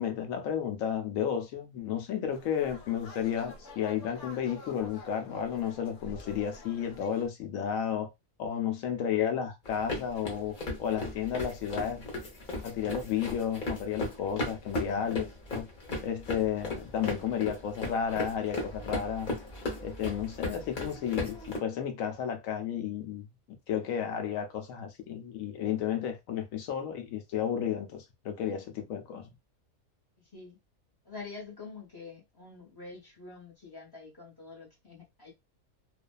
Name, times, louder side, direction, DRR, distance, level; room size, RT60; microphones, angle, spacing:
voice 1, 0.0-8.1 8.4-10.5 10.8-12.1 12.6-15.3 15.5-15.7 16.0-19.3 19.8-23.3 23.7-29.3, left 8 dB, 70° left, 0.9 m, -32 dB
sound 1, 2.3-7.3, left 2 dB, 90° left, 1.1 m, -48 dB
sound 2, 9.7-21.6, left 2 dB, 40° left, 0.8 m, -37 dB
voice 2, 14.6-15.0 30.2-30.6 31.0-35.3, left 4 dB, 15° left, 1.0 m, -46 dB
2.4 x 2.3 x 2.2 m
omnidirectional pair, 1.5 m